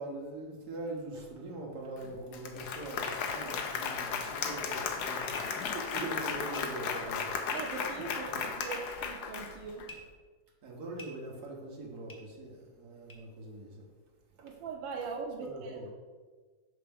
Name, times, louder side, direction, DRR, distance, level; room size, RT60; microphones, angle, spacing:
voice 1, 0.0-5.4 5.9-7.4 8.3-8.4 10.6-13.9 14.4-14.5 15.4-15.9, right 2 dB, 60° right, -2 dB, 1.8 m, -42 dB
Applause, 2.0-2.1 2.3-9.9, left 6 dB, 70° left, 1.1 m, -35 dB
sound 1, 5.3-5.4 6.5-6.6 7.5-7.6 8.5-9.0 9.8-10.0 10.9-11.1 12.1-12.2 13.1-13.2, left 2 dB, 25° left, 0.4 m, -46 dB
voice 2, 5.7-6.1 7.5-9.9 14.4-15.8, right 5 dB, 90° right, 2 dB, 1.4 m, -40 dB
5.8 x 4.5 x 5.2 m, 1.4 s
omnidirectional pair, 2.0 m